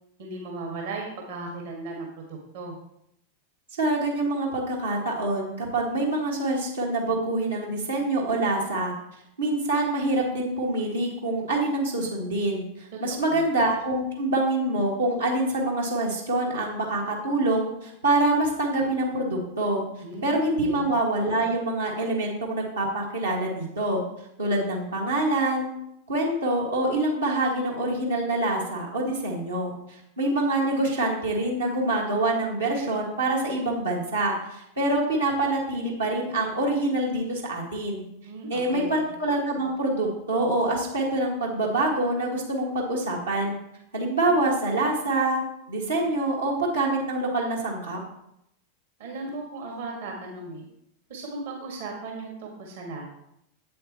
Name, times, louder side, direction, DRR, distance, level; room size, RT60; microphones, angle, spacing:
voice 1, 0.2-2.1 2.5-2.7 12.9-13.4 20.0-20.3 20.6-20.8 38.2-39.0 49.0-50.7 51.1-53.0, right 2 dB, 55° right, 0 dB, 1.6 m, -36 dB
voice 2, 3.8-8.9 9.4-19.8 20.2-24.0 24.4-25.7 26.1-38.0 38.5-43.5 43.9-45.4 45.7-48.0, right 2 dB, 70° right, -2 dB, 1.6 m, -26 dB
8.0 x 7.6 x 2.9 m, 0.79 s
figure-of-eight pair, 90°, 0 cm